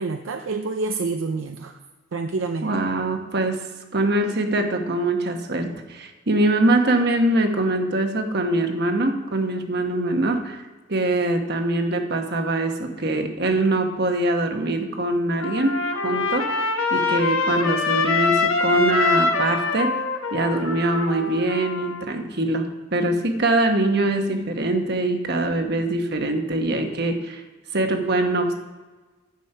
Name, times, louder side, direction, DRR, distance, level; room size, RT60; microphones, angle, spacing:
voice 1, 0.0-1.8 2.1-2.8, right 3 dB, 70° right, 6 dB, 0.5 m, -28 dB
voice 2, 2.6-3.6 3.9-10.6 10.9-19.9 20.3-27.4 27.7-28.5, right 2 dB, 50° right, 5 dB, 1.2 m, -23 dB
Trumpet, 15.4-22.0, left 3 dB, 85° left, 1.1 m, -24 dB
10.5 x 6.4 x 5.5 m, 1.3 s
head